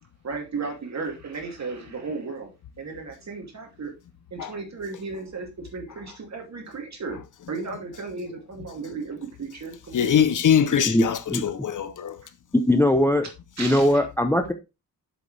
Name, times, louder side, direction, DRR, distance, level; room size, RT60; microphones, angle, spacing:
voice 1, 0.2-2.5 2.8-3.9 4.3-7.2 7.5-10.1 13.6-14.0, right 4 dB, 45° right, 2.6 m, -35 dB
voice 2, 9.9-12.2, left 8 dB, 55° left, 0.7 m, -22 dB
voice 3, 10.8-11.4 12.5-13.3 13.6-14.5, left 1 dB, 5° left, 0.6 m, -20 dB
8.2 x 7.1 x 3.3 m
wide cardioid pair, 150°, 36 cm